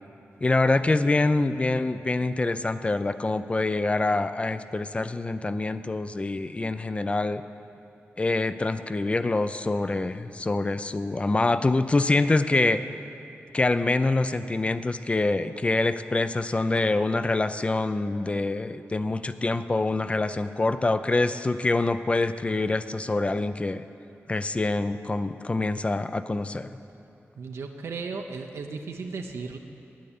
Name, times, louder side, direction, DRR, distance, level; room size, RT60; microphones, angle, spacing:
voice 1, 0.4-7.4 8.2-12.8 13.5-23.8 24.3-26.7, left 2 dB, 25° left, 12 dB, 0.5 m, -25 dB
voice 2, 27.4-29.6, right 4 dB, 85° right, 3 dB, 0.7 m, -35 dB
10.5 x 9.3 x 8.6 m, 2.8 s
wide cardioid pair, 90°, 5 cm